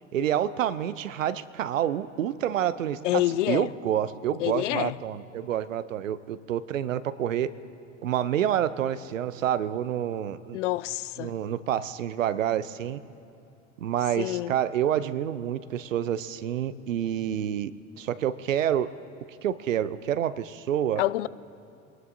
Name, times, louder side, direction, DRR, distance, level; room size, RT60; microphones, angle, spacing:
voice 1, 0.1-7.5 8.0-10.6 11.2-13.0 13.8-17.7 18.0-18.9 19.4-21.0, right 10 dB, 75° right, 16 dB, 0.7 m, -28 dB
voice 2, 3.0-3.7 4.4-4.9 10.5-11.3 14.2-14.5 21.0-21.3, left 16 dB, 65° left, 18 dB, 0.5 m, -27 dB
24.0 x 19.0 x 2.7 m, 2.7 s
figure-of-eight pair, 70°, 39 cm